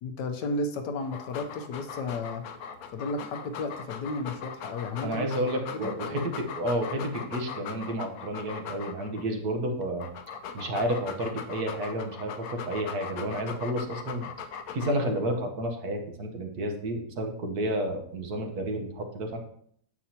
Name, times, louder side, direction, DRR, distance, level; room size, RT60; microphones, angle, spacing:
voice 1, 0.0-2.4 2.9-5.3 5.7-5.9, left 2 dB, 85° left, 5 dB, 1.4 m, -33 dB
Dog, 1.0-9.2 9.8-15.2, left 7 dB, 65° left, 1.0 m, -40 dB
voice 2, 5.0-10.1 10.5-14.3 14.7-19.4, right 1 dB, 65° right, 4 dB, 1.6 m, -31 dB
9.0 x 7.4 x 2.9 m, 0.62 s
omnidirectional pair, 1.8 m